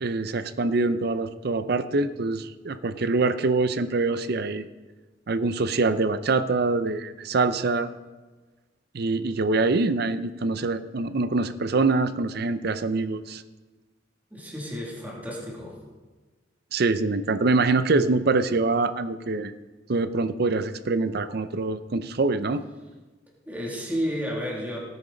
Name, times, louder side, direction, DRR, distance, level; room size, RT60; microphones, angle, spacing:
voice 1, 0.0-4.6 5.3-7.9 8.9-13.4 16.7-19.5 19.9-22.6, right 3 dB, 55° right, 13 dB, 0.6 m, -24 dB
voice 2, 14.3-15.8 23.5-24.8, equal, 10° right, -3 dB, 2.5 m, -31 dB
18.0 x 9.3 x 3.9 m, 1.3 s
head